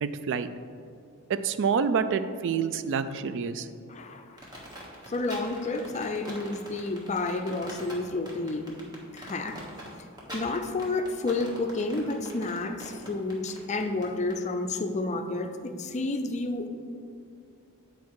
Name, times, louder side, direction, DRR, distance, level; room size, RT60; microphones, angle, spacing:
voice 1, 0.0-0.5 1.4-3.7, right 6 dB, 55° right, 12 dB, 0.3 m, -27 dB
voice 2, 3.9-4.2 5.1-8.7 9.1-9.6 10.3-16.7, left 2 dB, 30° left, 7 dB, 0.4 m, -30 dB
sound 1, 4.4-14.4, equal, 20° right, 1.3 m, -43 dB
8.4 x 4.6 x 4.6 m, 2.4 s
head